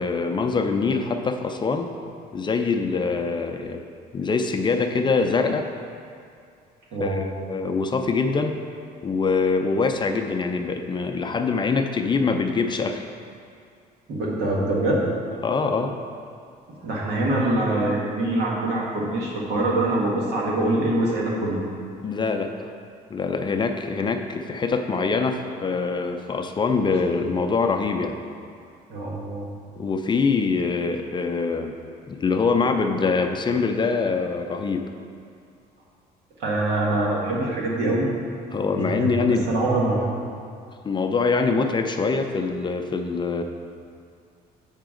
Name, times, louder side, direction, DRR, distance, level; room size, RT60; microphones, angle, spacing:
voice 1, 0.0-1.9 2.3-3.8 4.1-5.7 7.0-8.6 9.0-13.1 15.4-16.0 22.0-22.5 23.1-28.2 29.8-31.8 32.1-34.9 38.5-39.5 40.8-43.4, left 4 dB, 25° left, 5 dB, 0.4 m, -24 dB
voice 2, 6.9-7.3 14.1-15.0 16.8-21.6 28.9-29.5 36.4-38.1 38.7-39.1 39.5-40.1, right 2 dB, 75° right, -3 dB, 1.7 m, -24 dB
8.0 x 5.8 x 3.8 m, 2.3 s
cardioid pair, 110°, 17 cm